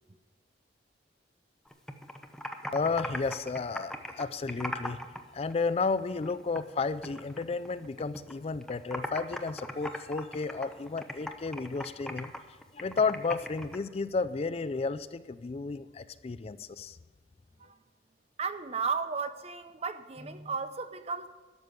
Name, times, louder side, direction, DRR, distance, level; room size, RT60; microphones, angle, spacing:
Computer keyboard, 1.7-5.2 5.5-6.7 7.0-8.3 8.6-13.8, left 1 dB, 5° left, 0.8 m, -39 dB
voice 1, 2.7-5.0 5.3-12.3 12.7-17.0, left 4 dB, 35° left, 0.4 m, -32 dB
voice 2, 18.4-21.3, right 5 dB, 35° right, 0.7 m, -34 dB
12.0 x 7.1 x 8.1 m
head